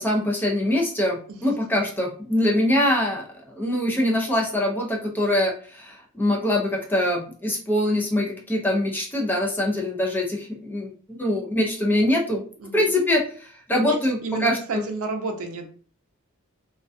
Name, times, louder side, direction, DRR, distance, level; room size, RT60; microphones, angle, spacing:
voice 1, 0.0-3.3 3.5-12.4 12.7-14.8, left 1 dB, 10° left, -1 dB, 0.4 m, -23 dB
voice 2, 13.7-15.7, right 3 dB, 65° right, 4 dB, 0.5 m, -31 dB
2.3 x 2.2 x 2.5 m, 0.42 s
head